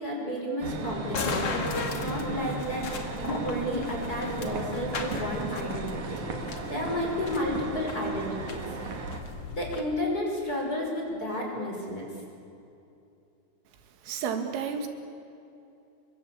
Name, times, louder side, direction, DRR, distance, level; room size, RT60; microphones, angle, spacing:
voice 1, 0.0-1.7 2.0-2.9 3.2-9.1 9.5-12.1, equal, 20° left, -1 dB, 5.9 m, -32 dB
sound 1, 0.6-9.2, right 3 dB, 45° right, 2.9 m, -36 dB
sound 2, 1.1-9.8, left 4 dB, 50° left, 1.9 m, -37 dB
voice 2, 14.0-14.9, right 7 dB, 80° right, 6 dB, 4.8 m, -31 dB
29.5 x 23.0 x 8.7 m, 2.7 s
omnidirectional pair, 5.7 m